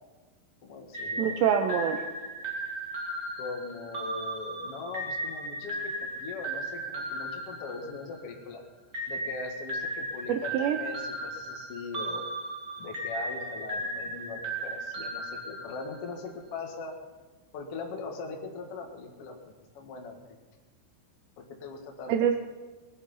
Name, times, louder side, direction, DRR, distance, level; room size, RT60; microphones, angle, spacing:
voice 1, 0.6-1.4 3.4-8.6 9.1-12.3 12.8-16.9 17.5-20.4 21.4-22.1, left 4 dB, 80° left, 1 dB, 1.3 m, -40 dB
sound 1, 0.9-8.4 8.9-16.2, right 1 dB, 50° right, 1.0 m, -36 dB
voice 2, 1.2-2.0 10.3-10.8 22.1-22.4, right 8 dB, 90° right, 7 dB, 2.5 m, -25 dB
20.0 x 10.0 x 5.6 m, 1.3 s
omnidirectional pair, 5.8 m